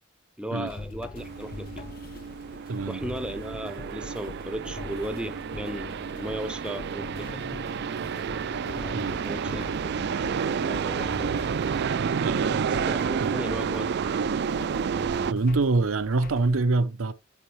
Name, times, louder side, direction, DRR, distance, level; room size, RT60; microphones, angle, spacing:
voice 1, 0.4-1.9 2.9-7.4 8.7-10.0 10.4-11.5 12.9-13.9, right 1 dB, 5° right, 0.6 m, -36 dB
sound 1, 0.7-16.6, left 3 dB, 45° left, 0.6 m, -43 dB
sound 2, 1.2-15.3, right 6 dB, 55° right, 0.4 m, -30 dB
voice 2, 2.7-3.0 8.9-9.2 12.2-12.7 13.2-13.4 15.3-17.1, right 3 dB, 85° right, 0.7 m, -25 dB
sound 3, 6.9-13.7, left 1 dB, 70° left, 2.8 m, -46 dB
8.7 x 6.2 x 3.1 m
head